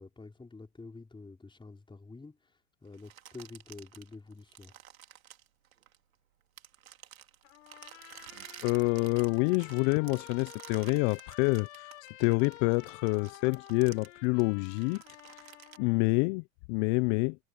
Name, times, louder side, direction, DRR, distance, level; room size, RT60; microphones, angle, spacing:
voice 1, 0.0-4.7, left 3 dB, 10° left, 4.5 m, -48 dB
sound 1, 2.9-6.1 6.6-15.8, right 11 dB, 80° right, 3.8 m, -52 dB
Trumpet, 7.4-16.0, left 15 dB, 70° left, 7.9 m, -51 dB
voice 2, 8.6-11.9 12.2-15.0 15.8-17.4, left 30 dB, 55° left, 1.2 m, -27 dB
hypercardioid pair, 90°, 41 cm